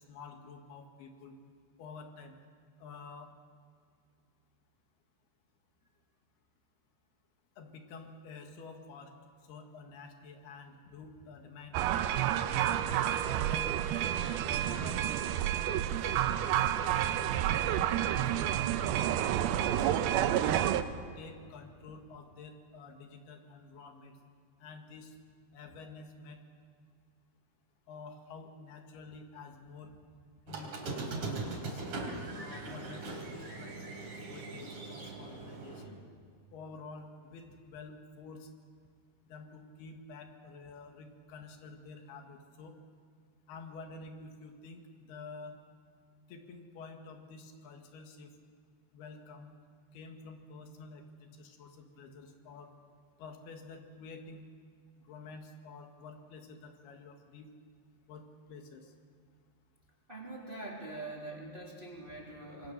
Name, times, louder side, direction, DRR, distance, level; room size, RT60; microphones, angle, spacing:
voice 1, 0.0-1.4 1.8-2.3 2.8-3.3 7.6-9.1 9.5-12.9 13.3-14.1 14.6-15.4 15.6-15.9 16.2-17.8 18.3-19.9 20.3-24.1 24.6-25.2 25.5-26.4 27.9-30.0 30.5-31.8 32.3-34.0 34.3-36.0 36.5-38.5 39.2-42.7 43.5-45.6 46.3-48.3 48.9-49.5 49.9-52.7 53.2-54.4 55.1-57.5 58.1-58.9 62.1-62.2, left 4 dB, 80° left, 4 dB, 3.8 m, -49 dB
sound 1, 11.7-20.8, right 11 dB, 80° right, 2.7 m, -29 dB
Squeak, 30.5-35.8, right 3 dB, 55° right, 4.6 m, -40 dB
voice 2, 60.1-62.7, right 2 dB, 15° right, -2 dB, 2.9 m, -43 dB
27.0 x 22.0 x 6.7 m, 2.1 s
omnidirectional pair, 4.5 m